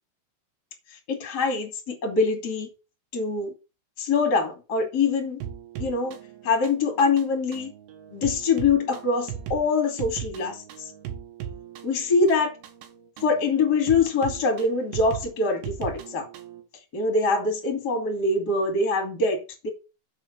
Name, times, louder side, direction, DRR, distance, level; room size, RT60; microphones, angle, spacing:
voice 1, 1.1-2.7 3.1-3.5 4.0-5.4 5.8-6.1 6.4-7.7 8.1-10.6 11.8-12.5 13.2-16.3 16.9-19.4 19.6-19.7, left 4 dB, 35° left, 1.5 m, -24 dB
sound 1, 5.4-16.6, right 9 dB, 70° right, 3.2 m, -38 dB
7.8 x 4.9 x 6.7 m
omnidirectional pair, 5.8 m